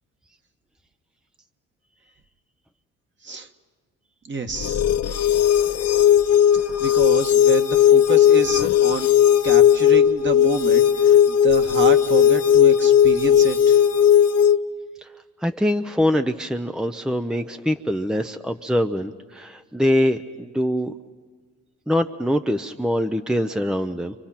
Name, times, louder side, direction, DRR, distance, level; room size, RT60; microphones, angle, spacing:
voice 1, 4.2-4.8 6.8-9.1 9.4-13.8, right 4 dB, 40° right, 5 dB, 1.8 m, -28 dB
sound 1, 4.6-14.6, left 9 dB, 55° left, 0.9 m, -16 dB
voice 2, 15.4-20.9 21.9-24.1, equal, ahead, 7 dB, 0.7 m, -23 dB
29.5 x 26.0 x 5.8 m, 1.5 s
cardioid pair, 90°, 30 cm